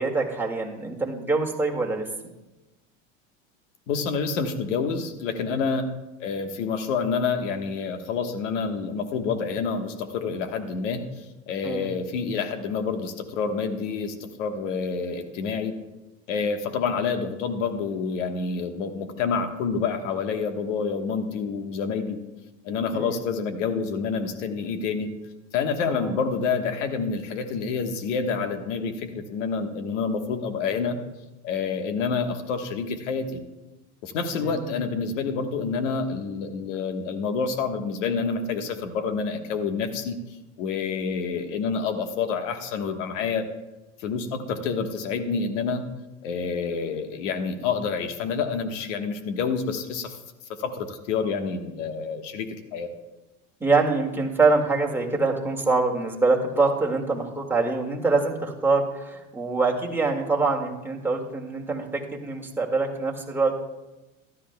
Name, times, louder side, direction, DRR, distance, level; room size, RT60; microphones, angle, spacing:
voice 1, 0.0-2.1 5.5-5.9 11.6-11.9 22.9-23.2 25.9-26.2 34.3-34.7 53.6-63.5, right 3 dB, 5° right, -1 dB, 2.0 m, -25 dB
voice 2, 3.9-5.9 6.2-15.7 16.3-22.2 22.6-25.1 25.5-31.0 31.4-33.4 34.0-40.1 40.6-43.4 44.0-45.8 46.2-50.2 50.6-52.9, left 5 dB, 75° left, 7 dB, 1.4 m, -28 dB
16.0 x 12.0 x 2.3 m, 1.0 s
hypercardioid pair, 95°, 37 cm